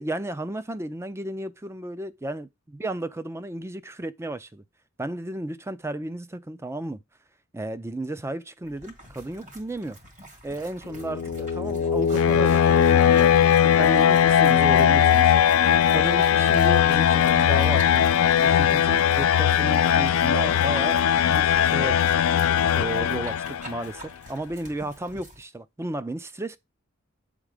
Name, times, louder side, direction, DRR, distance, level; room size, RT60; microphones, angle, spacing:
voice 1, 0.0-4.6 5.0-7.0 7.5-10.0 10.4-15.3 15.9-22.0 22.7-26.6, right 1 dB, 15° right, 0.5 m, -33 dB
sound 1, 8.6-25.4, right 1 dB, 35° right, 2.1 m, -46 dB
sound 2, 10.9-23.8, left 9 dB, 90° left, 0.4 m, -19 dB
8.1 x 3.7 x 4.9 m
head